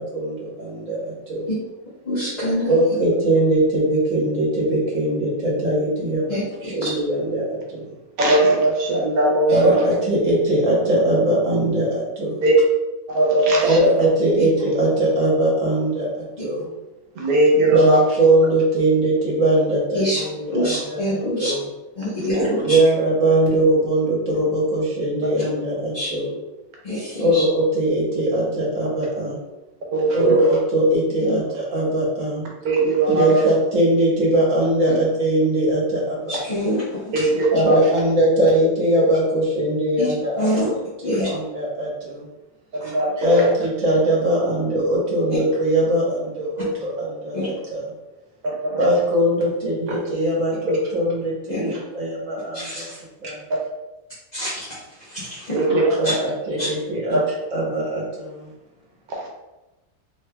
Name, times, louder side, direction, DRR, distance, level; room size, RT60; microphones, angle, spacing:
voice 1, 0.0-1.5 2.7-7.8 9.5-12.4 13.6-16.1 16.4-16.7 17.6-21.7 22.6-26.3 27.2-29.4 30.1-32.5 33.1-36.6 37.5-40.7 41.0-42.3 43.2-47.8 48.8-52.9 53.2-53.4 55.7-57.2 57.5-58.5, right 1 dB, 60° right, -5 dB, 1.4 m, -21 dB
voice 2, 2.1-2.7 6.3-6.4 6.7-6.9 14.4-14.5 19.9-20.2 20.5-21.5 22.0-22.8 25.9-26.1 26.8-27.4 31.2-31.4 34.9-35.0 36.3-37.1 40.0-40.1 40.4-40.7 41.0-41.3 42.8-42.9 47.3-47.5 51.5-51.7 52.5-53.0 54.3-54.7 55.1-55.6 56.0-56.1 56.6-56.7, equal, 35° left, -10 dB, 0.8 m, -25 dB
voice 3, 8.2-9.8 12.4-12.5 13.1-13.9 17.2-18.0 22.2-22.3 29.9-30.4 32.6-33.4 37.1-37.8 42.7-43.3 48.4-48.9 55.5-55.8 57.1-57.2 59.1-59.2, right 1 dB, 75° right, -2 dB, 1.2 m, -19 dB
3.5 x 3.1 x 2.2 m, 1.0 s
omnidirectional pair, 1.6 m